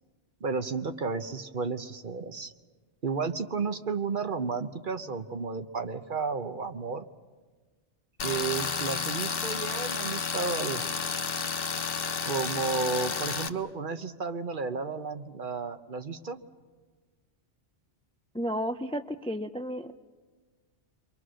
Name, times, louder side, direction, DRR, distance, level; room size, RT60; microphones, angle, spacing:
voice 1, 0.4-2.5 3.0-7.1 8.2-10.9 12.2-16.4, right 4 dB, 50° right, 9 dB, 1.1 m, -32 dB
Tools, 8.2-13.5, left 5 dB, 55° left, 1.1 m, -31 dB
voice 2, 18.3-19.9, equal, 5° left, 10 dB, 0.4 m, -32 dB
29.0 x 24.0 x 6.3 m, 1.4 s
omnidirectional pair, 1.2 m